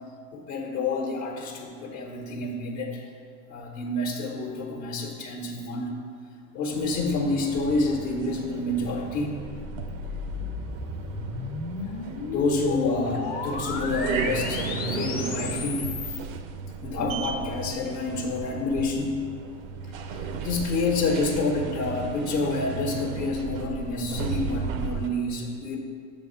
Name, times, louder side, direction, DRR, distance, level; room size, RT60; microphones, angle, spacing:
voice 1, 0.3-3.1 3.5-5.9 6.5-9.4 11.8-15.9 16.8-19.2 20.1-25.8, left 3 dB, 70° left, -1 dB, 1.0 m, -28 dB
sound 1, 6.7-25.1, right 5 dB, 75° right, 0.6 m, -35 dB
sound 2, 9.5-16.2, left 5 dB, 25° left, 0.4 m, -34 dB
6.6 x 3.6 x 5.5 m, 2.2 s
hypercardioid pair, 90°, 41 cm